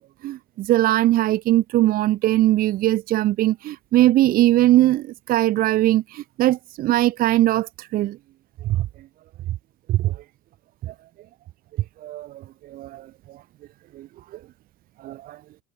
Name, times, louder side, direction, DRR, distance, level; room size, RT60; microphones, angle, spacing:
voice 1, 0.0-8.2 8.6-8.9 9.9-10.2 10.8-10.9 12.0-13.4 13.9-14.1 14.3-14.4 15.0-15.4, right 15 dB, 30° right, 2.5 m, -21 dB
supercardioid pair, 175°, 31 cm